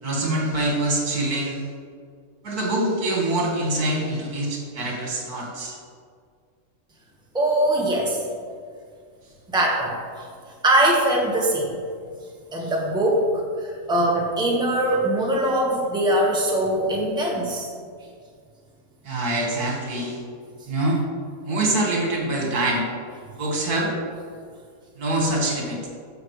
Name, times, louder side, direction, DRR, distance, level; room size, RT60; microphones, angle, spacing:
voice 1, 0.0-1.7 2.4-5.8 19.1-20.2 20.7-21.0 21.4-22.9 23.4-23.9 25.0-25.9, right 1 dB, 75° right, -2 dB, 2.1 m, -24 dB
voice 2, 7.3-8.2 9.5-10.3 10.6-11.8 12.5-17.7, right 1 dB, 5° right, -2 dB, 1.1 m, -22 dB
13.0 x 5.9 x 3.2 m, 2.1 s
omnidirectional pair, 1.6 m